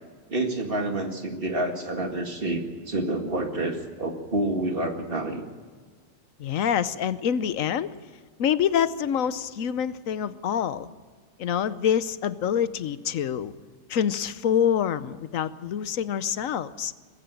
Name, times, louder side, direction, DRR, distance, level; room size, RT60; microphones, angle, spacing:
voice 1, 0.3-5.4, right 1 dB, 45° right, 4 dB, 2.2 m, -28 dB
voice 2, 6.4-7.9 8.4-10.9 11.4-13.5 13.9-16.9, left 8 dB, 90° left, 15 dB, 1.2 m, -26 dB
21.5 x 15.0 x 8.9 m, 1.5 s
omnidirectional pair, 1.3 m